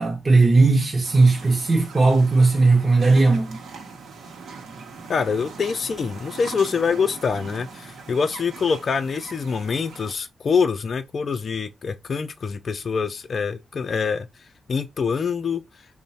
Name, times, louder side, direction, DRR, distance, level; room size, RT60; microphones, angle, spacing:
voice 1, 0.0-3.6, right 3 dB, 40° right, 0.6 m, -17 dB
sound 1, 1.0-10.1, right 4 dB, 90° right, 0.7 m, -41 dB
voice 2, 5.1-14.3 14.7-15.6, left 5 dB, 60° left, 0.3 m, -25 dB
3.0 x 2.1 x 4.1 m
cardioid pair, 55°, 0 cm